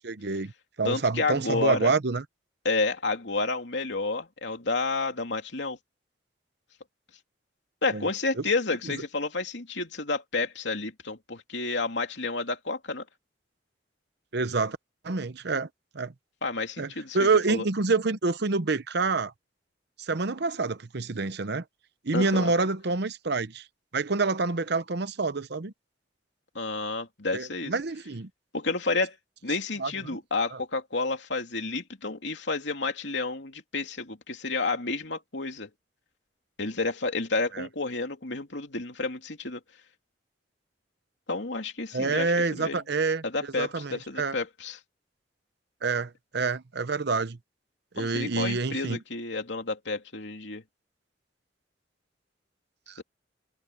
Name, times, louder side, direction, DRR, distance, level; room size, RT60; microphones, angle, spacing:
voice 1, 0.0-0.5 0.8-2.2 7.9-8.0 14.3-14.8 15.0-15.7 15.9-16.1 16.8-19.3 20.0-21.6 22.0-23.6 23.9-25.7 27.3-28.3 29.8-30.2 37.5-37.7 41.9-43.2 43.6-44.3 45.8-47.4 47.9-49.0 52.9-53.0, right 3 dB, 65° right, 0.9 m, -27 dB
voice 2, 0.8-1.9 2.6-5.8 7.8-13.0 16.4-17.6 22.1-22.5 26.5-27.7 28.5-29.2 29.4-35.7 36.6-39.6 41.3-42.8 43.2-44.8 48.0-50.6 53.0-53.1, left 3 dB, 75° left, 3.1 m, -30 dB
head